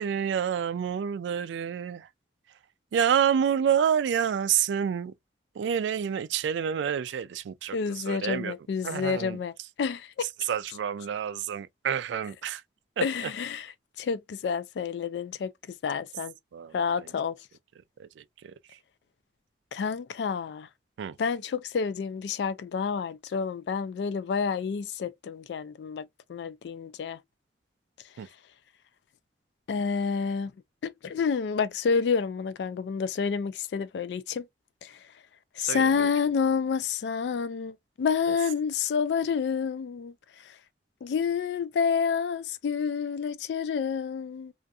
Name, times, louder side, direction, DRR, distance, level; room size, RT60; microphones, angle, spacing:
voice 1, 0.0-2.1 2.9-5.1 5.6-8.5 8.8-9.4 10.5-12.6 13.0-13.1 16.5-17.1 18.0-18.5 21.0-21.2 28.2-28.3 35.6-36.1 38.3-38.4, right 8 dB, 85° right, 0.3 m, -28 dB
voice 2, 7.7-10.3 13.0-16.4 16.7-17.4 19.7-20.7 21.2-27.2 29.7-30.5 30.8-34.5 34.8-35.1 35.6-40.6 41.0-44.5, left 6 dB, 70° left, 0.3 m, -29 dB
2.5 x 2.3 x 2.5 m
head